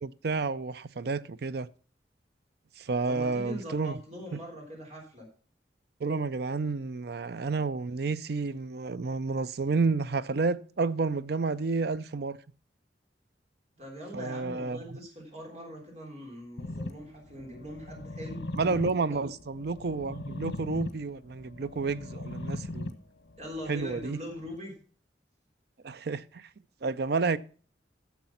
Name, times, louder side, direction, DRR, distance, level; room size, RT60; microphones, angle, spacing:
voice 1, 0.0-1.7 2.8-4.0 6.0-12.4 14.1-14.8 18.6-22.9 23.7-24.2 25.8-26.4 26.8-27.4, right 4 dB, 65° right, 0.5 m, -30 dB
voice 2, 3.1-5.3 13.8-18.4 18.9-19.2 23.4-24.7, equal, 40° right, 3.6 m, -42 dB
sound 1, 16.6-24.5, left 2 dB, 85° left, 1.1 m, -40 dB
10.5 x 6.8 x 5.7 m
head